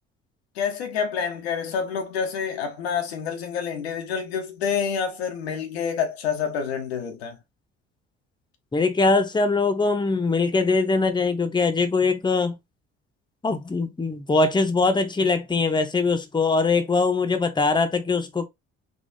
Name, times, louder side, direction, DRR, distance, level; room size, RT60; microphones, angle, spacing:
voice 1, 0.6-7.4, left 7 dB, 90° left, 0.8 m, -28 dB
voice 2, 8.7-12.6 13.4-18.5, left 3 dB, 15° left, 0.8 m, -22 dB
3.6 x 2.6 x 2.6 m
hypercardioid pair, 55°, 31 cm